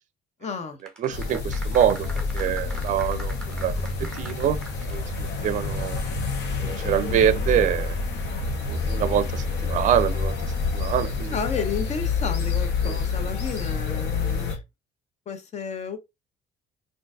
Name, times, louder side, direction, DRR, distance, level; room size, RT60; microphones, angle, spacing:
voice 1, 0.4-0.8 11.3-14.6 15.3-16.0, left 5 dB, 45° left, 0.7 m, -32 dB
sound 1, 0.8-5.3 5.6-5.7, equal, 5° left, 0.8 m, -42 dB
voice 2, 1.0-2.1 2.3-3.7 4.1-4.6 4.9-6.0 6.6-8.0 8.7-10.3 10.7-11.3 12.8-13.0, right 10 dB, 50° right, 0.5 m, -25 dB
sound 2, 1.1-14.6, left 4 dB, 80° left, 0.9 m, -28 dB
3.8 x 2.5 x 2.3 m
cardioid pair, 110°, 17 cm